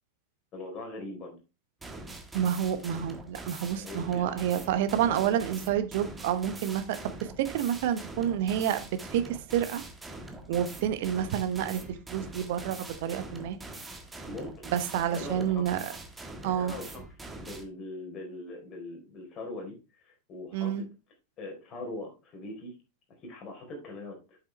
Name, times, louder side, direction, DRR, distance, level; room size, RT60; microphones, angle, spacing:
voice 1, 0.5-1.4 3.8-4.6 5.1-5.4 14.2-14.7 15.1-15.7 16.4-17.0 17.4-20.7 21.4-22.7 23.2-24.4, left 2 dB, 30° left, 3.9 m, -41 dB
sound 1, 1.8-17.6, right 2 dB, 10° right, 1.4 m, -44 dB
voice 2, 2.3-7.0 7.4-9.8 10.5-11.8 12.1-13.6 14.7-15.8 16.4-16.7 20.5-20.8, right 10 dB, 50° right, 1.1 m, -29 dB
8.2 x 7.2 x 3.2 m
figure-of-eight pair, 90°, 0 cm